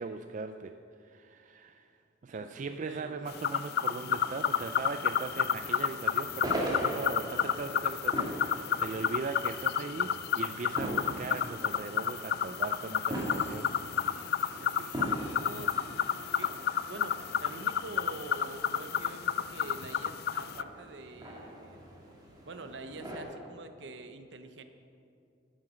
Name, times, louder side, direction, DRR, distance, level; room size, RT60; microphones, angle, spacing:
voice 1, 0.0-1.9 2.2-13.7, right 4 dB, 45° right, 8 dB, 0.4 m, -39 dB
voice 2, 2.3-3.2 14.3-16.0 16.3-16.5 16.9-21.8 22.5-24.6, right 2 dB, 70° right, 8 dB, 0.8 m, -46 dB
sound 1, 3.3-20.6, left 8 dB, 55° left, 0.3 m, -31 dB
sound 2, 4.0-23.2, right 1 dB, 20° right, 1.9 m, -42 dB
Harmonica, 13.1-18.3, left 4 dB, 75° left, 2.0 m, -58 dB
11.0 x 9.5 x 6.2 m, 2.6 s
head